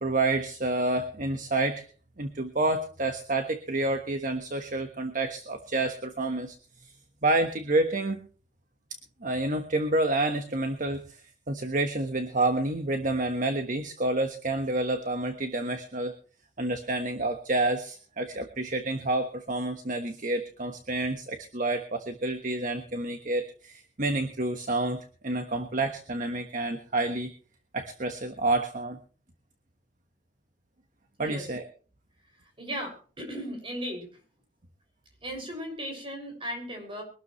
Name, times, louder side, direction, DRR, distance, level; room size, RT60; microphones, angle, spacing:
voice 1, 0.0-1.9 2.2-6.5 6.8-6.9 7.2-8.2 9.2-16.1 16.6-27.3 27.7-29.0 31.2-31.7, right 2 dB, 45° right, 7 dB, 1.3 m, -29 dB
voice 2, 32.6-34.1 35.2-37.0, equal, 30° right, 2 dB, 6.3 m, -36 dB
23.0 x 12.5 x 3.2 m, 0.40 s
head